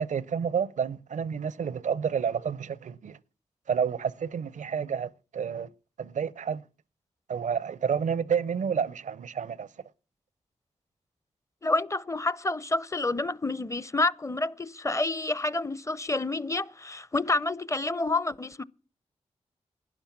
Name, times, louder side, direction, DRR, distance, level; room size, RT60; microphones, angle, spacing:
voice 1, 0.0-3.2 3.7-5.7 6.0-6.6 7.3-9.7, right 7 dB, 75° right, 0.6 m, -29 dB
voice 2, 11.6-18.6, left 2 dB, 25° left, 0.7 m, -28 dB
12.0 x 9.8 x 7.3 m
cardioid pair, 40°, 13 cm